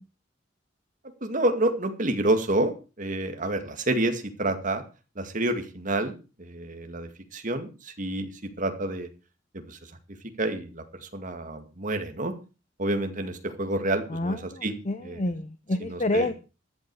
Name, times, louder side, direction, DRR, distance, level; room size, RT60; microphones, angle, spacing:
voice 1, 1.2-2.7 3.0-4.8 5.2-6.1 6.4-9.1 9.5-9.9 10.4-12.3 12.8-14.7 15.0-15.2 15.8-16.3, right 1 dB, 45° right, 7 dB, 2.1 m, -28 dB
voice 2, 14.1-16.3, left 2 dB, 40° left, 12 dB, 0.8 m, -28 dB
14.0 x 11.0 x 4.8 m, 0.33 s
head